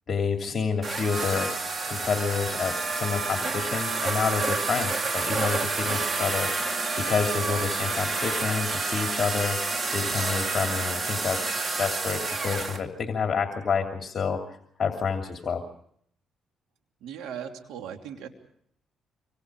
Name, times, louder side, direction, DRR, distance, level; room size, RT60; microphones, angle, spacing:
voice 1, 0.1-1.5 1.9-9.6 9.9-15.6, left 6 dB, 45° left, 3 dB, 2.8 m, -29 dB
sound 1, 0.8-12.8, right 3 dB, 35° right, 2.6 m, -29 dB
voice 2, 17.0-18.3, right 8 dB, 90° right, 4 dB, 3.1 m, -38 dB
26.0 x 25.5 x 4.9 m, 0.67 s
cardioid pair, 90°, 0 cm